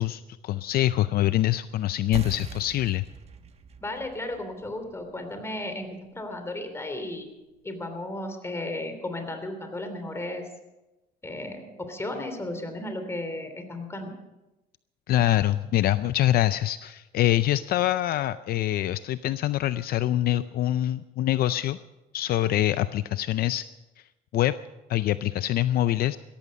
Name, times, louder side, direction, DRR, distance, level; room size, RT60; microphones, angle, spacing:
voice 1, 0.0-3.0 15.1-21.8 22.1-23.7 24.3-24.5 24.9-26.2, left 14 dB, 65° left, 14 dB, 0.5 m, -24 dB
sound 1, 2.1-7.2, right 5 dB, 40° right, 1.2 m, -43 dB
voice 2, 3.8-7.3 7.6-10.5 11.2-14.1, left 1 dB, 15° left, 6 dB, 3.1 m, -34 dB
16.5 x 14.5 x 5.3 m, 1.0 s
cardioid pair, 110°, 17 cm